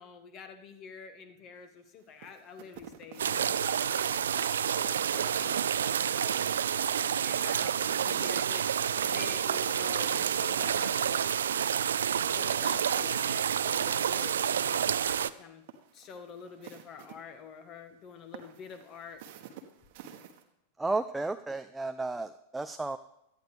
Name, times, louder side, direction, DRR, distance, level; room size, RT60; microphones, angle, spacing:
voice 1, 0.0-6.5 7.2-11.3 12.3-15.6 15.9-19.2, left 6 dB, 35° left, 8 dB, 1.6 m, -48 dB
sound 1, 2.2-11.3 12.6-14.5 14.8-14.9 15.5-17.2 18.3-20.4, right 9 dB, 50° right, 1.3 m, -50 dB
sound 2, 3.2-15.3, right 8 dB, 65° right, 0.4 m, -29 dB
voice 2, 20.8-23.0, right 3 dB, 5° right, 9 dB, 0.5 m, -33 dB
18.0 x 13.0 x 3.4 m, 0.83 s
figure-of-eight pair, 90°, 0 cm